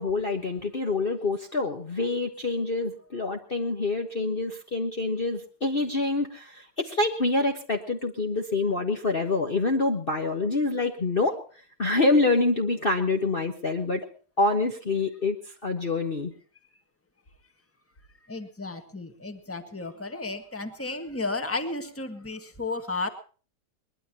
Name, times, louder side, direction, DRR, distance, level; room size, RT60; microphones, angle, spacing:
voice 1, 0.0-11.4 11.8-14.1 14.4-15.4 15.6-16.3, left 3 dB, 35° left, 3 dB, 1.4 m, -26 dB
voice 2, 18.3-23.1, left 3 dB, 10° left, 7 dB, 1.6 m, -33 dB
23.0 x 20.5 x 3.0 m, 0.40 s
omnidirectional pair, 1.8 m